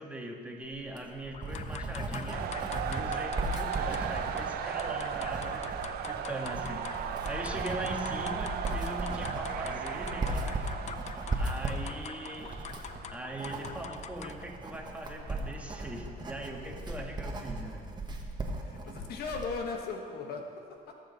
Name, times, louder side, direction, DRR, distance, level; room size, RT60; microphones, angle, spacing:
voice 1, 0.0-2.5 2.8-5.7 6.0-10.7 11.4-12.5 13.1-17.9, right 1 dB, 10° right, 1 dB, 1.5 m, -41 dB
Writing, 0.8-19.6, right 2 dB, 25° right, 1.4 m, -37 dB
sound 1, 1.3-14.5, left 8 dB, 40° left, 0.5 m, -45 dB
sound 2, 2.3-16.1, right 8 dB, 65° right, 0.7 m, -38 dB
voice 2, 18.6-21.0, left 4 dB, 65° left, 3 dB, 1.2 m, -38 dB
18.5 x 7.2 x 4.1 m, 2.3 s
cardioid pair, 110°, 17 cm